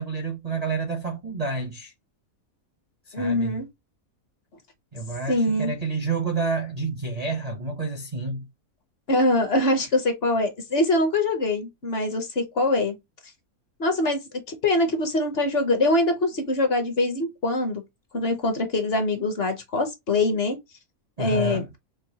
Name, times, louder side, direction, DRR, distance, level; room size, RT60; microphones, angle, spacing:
voice 1, 0.0-1.9 3.2-3.6 4.9-8.5 21.2-21.7, right 4 dB, 45° right, 0.5 m, -29 dB
voice 2, 3.1-3.7 5.3-5.7 9.1-12.9 13.8-14.2 14.5-17.8 18.1-20.6 21.2-21.8, left 2 dB, 50° left, 1.0 m, -23 dB
4.7 x 2.3 x 2.7 m
omnidirectional pair, 1.5 m